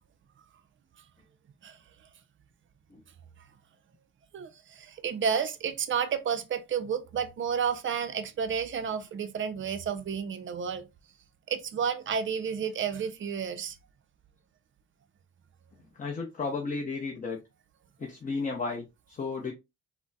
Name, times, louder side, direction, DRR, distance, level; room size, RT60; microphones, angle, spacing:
voice 1, 4.3-10.9 11.5-13.8, right 7 dB, 40° right, 0.5 m, -31 dB
voice 2, 16.0-17.4 18.0-19.5, left 4 dB, 25° left, 0.6 m, -33 dB
3.8 x 2.1 x 2.3 m
cardioid pair, 90°, 30 cm